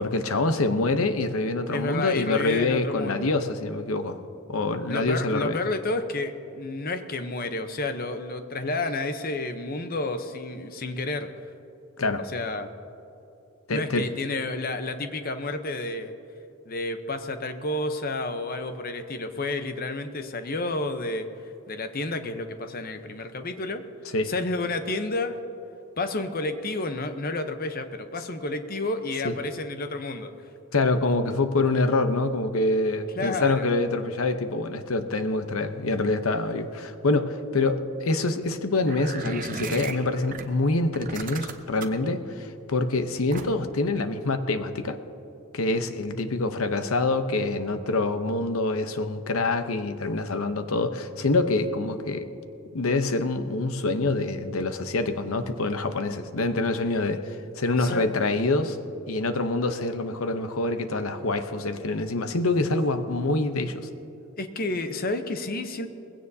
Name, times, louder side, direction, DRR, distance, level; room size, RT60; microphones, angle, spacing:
voice 1, 0.0-4.2 4.5-5.6 12.0-12.2 13.7-14.1 24.1-24.3 29.2-29.3 30.7-45.0 45.5-52.3 52.7-58.8 59.1-63.9, left 2 dB, 75° left, 9 dB, 0.8 m, -26 dB
voice 2, 1.7-3.3 4.9-11.3 12.2-12.7 13.7-16.1 16.7-21.3 21.7-23.8 24.2-25.4 26.0-30.5 33.2-33.7 57.8-58.1 64.4-65.9, left 2 dB, 40° left, 8 dB, 0.8 m, -30 dB
sound 1, 38.9-40.4 40.9-42.0 43.3-43.7, right 4 dB, 40° right, 0.8 m, -36 dB
20.0 x 16.5 x 2.8 m, 3.0 s
head